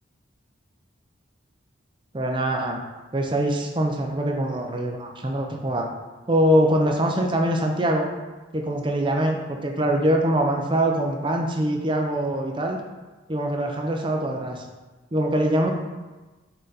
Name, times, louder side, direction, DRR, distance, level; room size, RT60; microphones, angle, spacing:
voice 1, 2.1-2.8 3.1-5.9 6.3-8.1 8.5-12.8 13.3-14.6 15.1-15.7, right 1 dB, 25° right, 2 dB, 0.6 m, -23 dB
6.6 x 4.0 x 3.9 m, 1.2 s
head